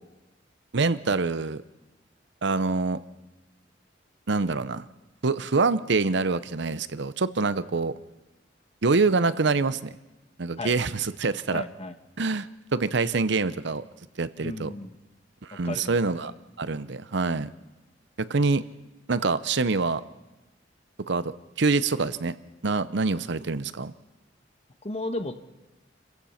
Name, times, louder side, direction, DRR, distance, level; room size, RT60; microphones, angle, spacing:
voice 1, 0.7-1.6 2.4-3.0 4.3-4.9 5.2-8.0 8.8-9.9 10.4-11.6 12.2-13.8 14.2-14.7 15.4-16.3 16.6-17.5 18.2-18.6 19.1-20.0 21.1-22.4 22.6-23.9, right 4 dB, 65° right, 15 dB, 0.8 m, -25 dB
voice 2, 11.5-11.9 14.4-14.9 15.5-15.9 24.8-25.5, left 2 dB, 35° left, 8 dB, 1.4 m, -34 dB
29.5 x 15.5 x 5.8 m, 1.1 s
head